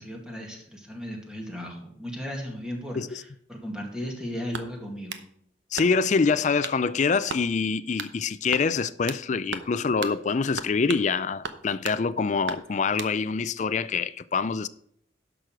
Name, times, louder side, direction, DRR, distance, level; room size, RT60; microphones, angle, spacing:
voice 1, 0.0-5.2, equal, 5° right, 2.1 m, -36 dB
sound 1, 4.5-5.3 5.8-6.2 6.6-6.8 7.3-7.5 8.0-8.2 8.5-9.2 9.5-9.7 10.0-10.2 10.6-11.1 11.4-12.0 12.5-13.1, right 5 dB, 85° right, 0.8 m, -36 dB
voice 2, 5.7-14.7, left 5 dB, 40° left, 0.4 m, -25 dB
11.5 x 6.2 x 4.8 m
head